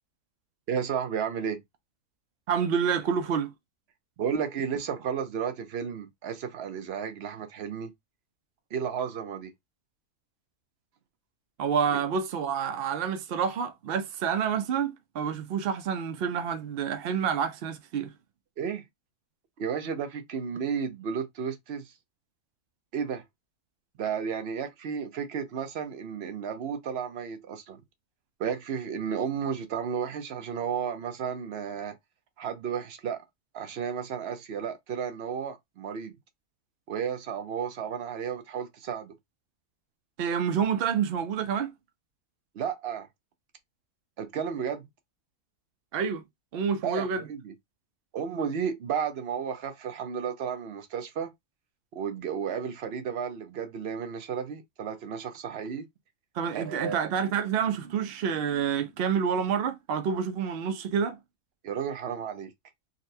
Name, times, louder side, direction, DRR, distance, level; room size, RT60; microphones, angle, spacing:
voice 1, 0.7-1.6 4.2-7.9 8.7-9.5 11.9-12.0 18.6-18.8 19.6-21.9 22.9-23.2 24.0-27.8 28.4-31.9 32.4-33.2 33.5-36.2 36.9-39.1 42.5-43.1 44.2-44.9 46.8-47.5 48.1-51.3 51.9-55.9 56.5-57.0 61.6-62.5, right 7 dB, 55° right, 0.7 m, -33 dB
voice 2, 2.5-3.5 11.6-18.1 40.2-41.7 45.9-46.2 46.5-47.2 56.3-61.2, right 7 dB, 90° right, 0.5 m, -28 dB
3.9 x 2.1 x 2.6 m
omnidirectional pair, 1.6 m